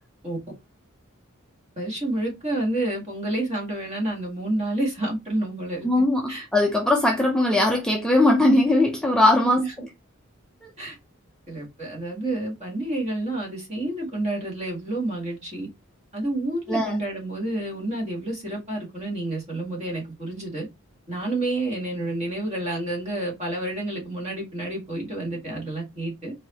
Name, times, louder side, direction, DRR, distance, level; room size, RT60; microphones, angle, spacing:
voice 1, 1.8-5.9 6.3-6.5 9.6-9.7 10.8-11.0 11.5-15.7 16.1-20.7 21.1-26.3, right 1 dB, 35° right, 1.8 m, -29 dB
voice 2, 5.8-9.6 16.7-17.0, left 1 dB, 5° left, 0.6 m, -20 dB
4.5 x 2.8 x 2.9 m
head